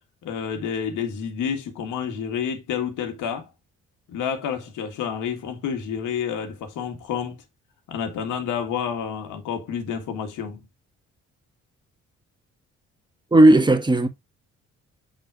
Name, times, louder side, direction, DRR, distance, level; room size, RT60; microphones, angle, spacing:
voice 1, 0.2-3.5 4.1-7.4 7.9-10.6, left 7 dB, 85° left, 1.7 m, -29 dB
voice 2, 13.3-14.1, right 1 dB, 15° right, 1.4 m, -14 dB
7.5 x 3.9 x 4.7 m
cardioid pair, 90°, 30 cm